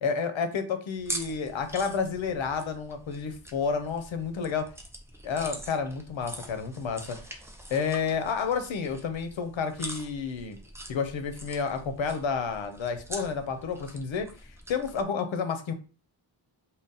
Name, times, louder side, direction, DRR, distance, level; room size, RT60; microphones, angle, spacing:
voice 1, 0.0-4.6 5.2-7.2 7.7-10.6 10.9-14.3 14.7-15.7, left 5 dB, 75° left, 8 dB, 0.7 m, -30 dB
sound 1, 1.0-15.0, right 1 dB, 5° right, 0.3 m, -43 dB
3.9 x 2.1 x 3.9 m, 0.35 s
wide cardioid pair, 180°, 47 cm